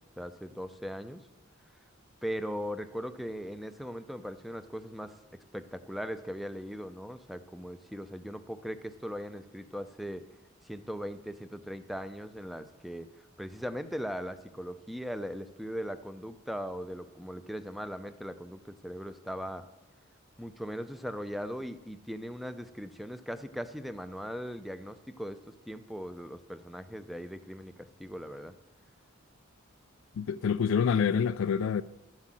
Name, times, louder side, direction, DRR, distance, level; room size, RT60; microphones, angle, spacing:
voice 1, 0.2-1.2 2.2-5.2 5.5-10.2 10.6-19.6 20.4-28.5, equal, ahead, 0.6 m, -39 dB
voice 2, 30.2-31.8, left 6 dB, 75° left, 0.3 m, -27 dB
12.0 x 7.6 x 7.6 m
head